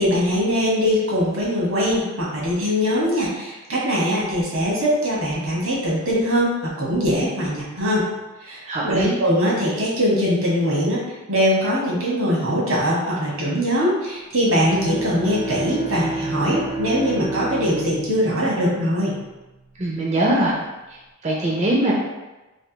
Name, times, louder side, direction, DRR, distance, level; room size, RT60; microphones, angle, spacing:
voice 1, 0.0-8.0 8.4-11.0 11.3-19.1, equal, 85° right, -6 dB, 1.3 m, -21 dB
voice 2, 8.7-9.1 19.8-20.5 21.2-21.9, right 1 dB, 30° right, -5 dB, 0.4 m, -21 dB
Bowed string instrument, 14.4-19.5, right 2 dB, 65° right, 0.8 m, -30 dB
3.3 x 2.7 x 2.9 m, 1.1 s
head